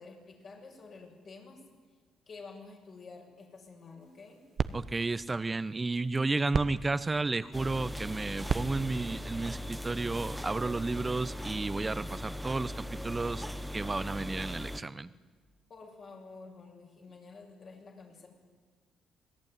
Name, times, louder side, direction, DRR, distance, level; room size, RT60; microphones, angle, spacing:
voice 1, 0.0-1.6 2.3-4.4 15.7-18.3, left 4 dB, 50° left, 0 dB, 7.0 m, -50 dB
sound 1, 4.0-10.4, right 6 dB, 50° right, 1.1 m, -39 dB
voice 2, 4.7-13.5 13.7-15.1, right 3 dB, 25° right, 15 dB, 1.1 m, -32 dB
sound 2, 7.5-14.8, left 1 dB, 5° right, 1.2 m, -39 dB
27.0 x 19.5 x 9.4 m, 1.5 s
cardioid pair, 75°, 0 cm